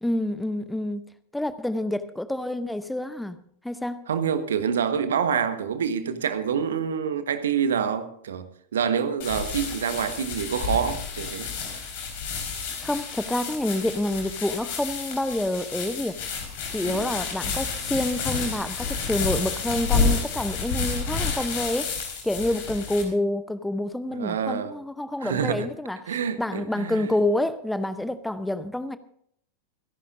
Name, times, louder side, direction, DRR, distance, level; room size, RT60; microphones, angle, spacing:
voice 1, 0.0-3.4 3.6-4.0 12.8-16.2 16.7-29.0, left 1 dB, 5° left, 0.7 m, -28 dB
voice 2, 4.1-11.5 16.8-17.2 24.1-24.7 25.2-25.7 26.1-27.1, right 7 dB, 65° right, 1.3 m, -27 dB
sound 1, 9.2-23.0, left 5 dB, 50° left, 4.5 m, -30 dB
27.5 x 11.0 x 2.6 m
figure-of-eight pair, 90°, 0 cm